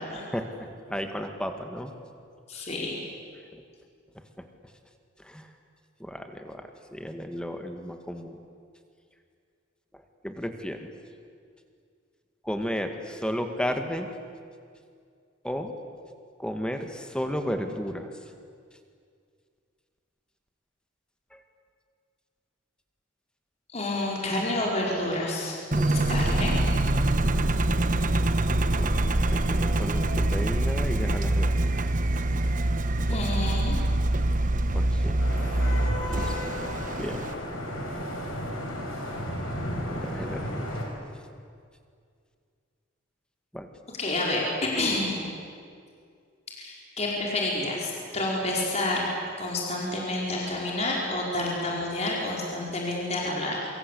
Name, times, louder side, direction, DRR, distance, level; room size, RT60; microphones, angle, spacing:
voice 1, 0.3-1.9 3.5-3.6 5.2-5.4 6.0-8.4 10.2-10.9 12.4-14.1 15.4-15.7 16.4-18.1 21.3-21.4 25.7-26.0 28.8-31.8 33.1-33.3 34.7-35.2 36.2-36.4 37.0-37.2 39.9-40.7 43.5-43.7, equal, 5° left, 5 dB, 2.0 m, -33 dB
voice 2, 2.5-3.0 23.7-25.6 25.9-26.6 33.1-33.8 44.0-45.2 46.6-53.7, left 2 dB, 35° left, -2 dB, 4.8 m, -29 dB
Engine, 25.7-37.3, right 1 dB, 40° right, 1.1 m, -25 dB
Vehicle horn car horn honking / Traffic noise roadway noise, 35.2-40.9, left 1 dB, 85° left, 5.8 m, -34 dB
27.0 x 24.5 x 8.5 m, 2.2 s
head